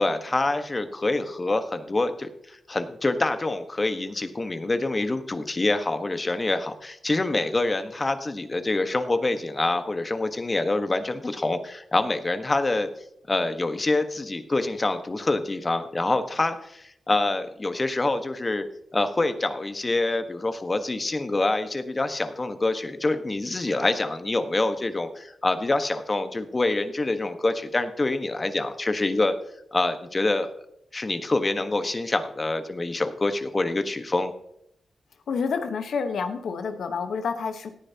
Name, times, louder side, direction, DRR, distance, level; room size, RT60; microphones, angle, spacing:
voice 1, 0.0-12.9 13.3-18.6 18.9-29.3 29.7-30.5 30.9-34.3, left 2 dB, 35° left, 9 dB, 1.3 m, -26 dB
voice 2, 35.3-37.7, left 5 dB, 80° left, 7 dB, 1.1 m, -28 dB
17.5 x 9.9 x 2.9 m, 0.74 s
supercardioid pair, 40°, 0 cm